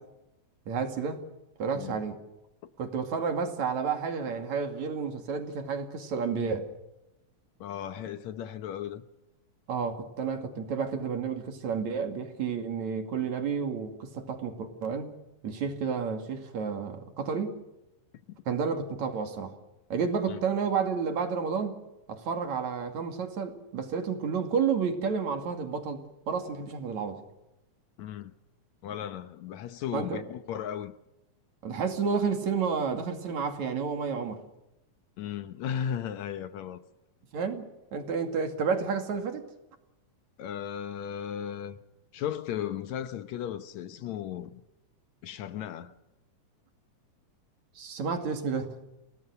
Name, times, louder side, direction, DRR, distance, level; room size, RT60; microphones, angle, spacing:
voice 1, 0.7-1.2 1.6-2.2 2.8-6.7 9.7-15.1 15.4-17.5 18.5-19.6 19.9-21.8 22.1-27.2 29.9-30.2 31.6-34.4 37.3-39.4 47.8-48.7, right 6 dB, 65° right, 3.7 m, -31 dB
voice 2, 7.6-9.0 20.3-20.4 28.0-28.3 28.8-30.9 35.2-36.8 40.4-41.8 42.1-44.6 45.2-45.9, left 9 dB, 70° left, 2.1 m, -36 dB
29.0 x 18.5 x 6.6 m
omnidirectional pair, 3.6 m